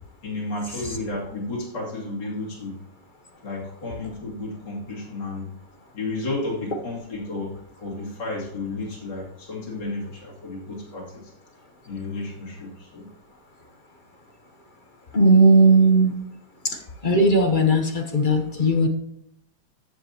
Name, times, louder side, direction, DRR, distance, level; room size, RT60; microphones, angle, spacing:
voice 1, 0.2-2.8 3.4-5.5 5.9-7.5 7.8-11.3 11.9-13.1, left 2 dB, 70° left, -6 dB, 3.5 m, -32 dB
voice 2, 15.1-16.1 16.6-16.8 17.0-18.9, right 2 dB, 45° left, 4 dB, 0.6 m, -17 dB
13.5 x 7.3 x 2.9 m, 0.74 s
omnidirectional pair, 2.0 m